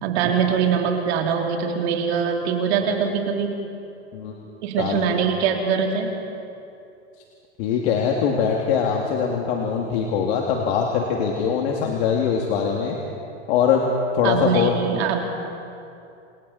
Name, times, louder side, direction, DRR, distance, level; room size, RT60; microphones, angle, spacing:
voice 1, 0.0-3.6 4.6-6.2 14.2-15.2, right 7 dB, 65° right, 2 dB, 3.3 m, -23 dB
voice 2, 7.6-13.0 13.5-13.8 14.1-14.8, left 7 dB, 65° left, 0 dB, 2.7 m, -22 dB
29.5 x 27.5 x 4.4 m, 2.7 s
hypercardioid pair, 115°, 34 cm